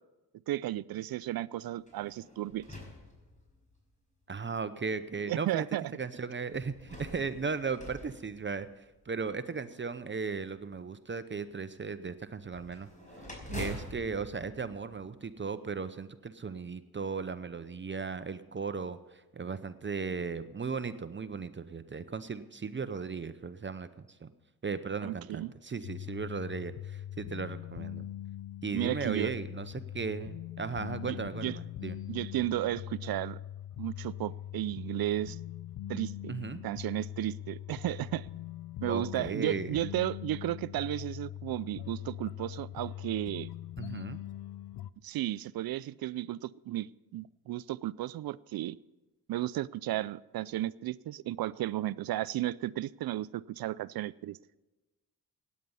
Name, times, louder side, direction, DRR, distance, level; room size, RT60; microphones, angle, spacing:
voice 1, 0.5-2.6 5.3-5.9 25.0-25.5 28.7-29.3 31.0-31.2 31.4-31.6 32.1-33.4 33.8-35.4 35.9-36.3 36.6-38.3 38.8-43.5 45.0-48.8 49.3-54.4, right 14 dB, 65° right, 19 dB, 0.5 m, -34 dB
sound 1, 1.8-3.8 4.6-4.7 6.5-9.1 12.5-15.6, left 1 dB, 20° left, 5.5 m, -46 dB
voice 2, 4.3-5.7 5.9-8.7 9.1-12.9 13.5-24.3 24.6-28.1 28.6-32.0 36.3-36.6 38.9-39.8 43.8-44.2, right 5 dB, 30° right, 12 dB, 0.7 m, -36 dB
sound 2, 25.8-44.9, left 12 dB, 70° left, 0.6 m, -42 dB
16.5 x 9.6 x 5.5 m, 1.1 s
cardioid pair, 70°, 38 cm